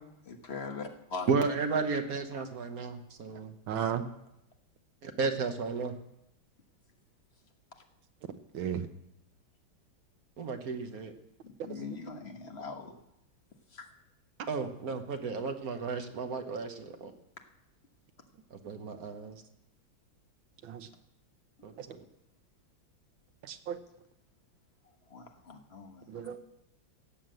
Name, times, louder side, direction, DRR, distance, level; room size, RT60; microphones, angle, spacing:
voice 1, 0.3-1.3 11.4-12.9 13.7-13.9 21.6-21.7 25.1-26.1, left 4 dB, 35° left, 4 dB, 1.3 m, -41 dB
voice 2, 1.3-3.9 5.0-6.0 10.4-11.1 14.5-17.1 18.6-19.4 21.6-21.7, right 4 dB, 55° right, 6 dB, 1.4 m, -33 dB
voice 3, 3.7-4.1 8.5-8.9 11.7-11.8 14.6-14.7 20.6-20.9 21.8-21.9 23.4-23.8 26.1-26.4, right 9 dB, 80° right, 9 dB, 1.7 m, -35 dB
17.0 x 7.3 x 7.8 m, 0.83 s
omnidirectional pair, 2.1 m